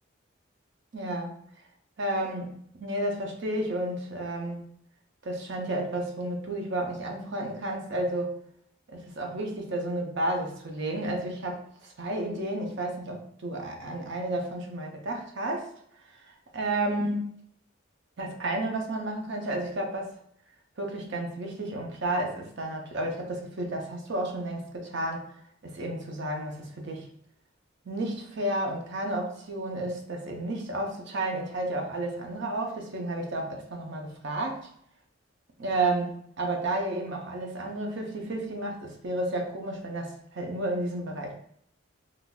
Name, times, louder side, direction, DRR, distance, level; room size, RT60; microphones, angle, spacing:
voice 1, 0.9-1.4 2.0-2.5 2.8-4.6 5.2-8.4 8.9-15.7 16.2-17.3 18.2-20.1 20.8-25.2 25.6-27.1 27.8-34.7 35.6-41.3, right 1 dB, 60° right, 2 dB, 0.6 m, -32 dB
3.9 x 2.5 x 2.2 m, 0.68 s
head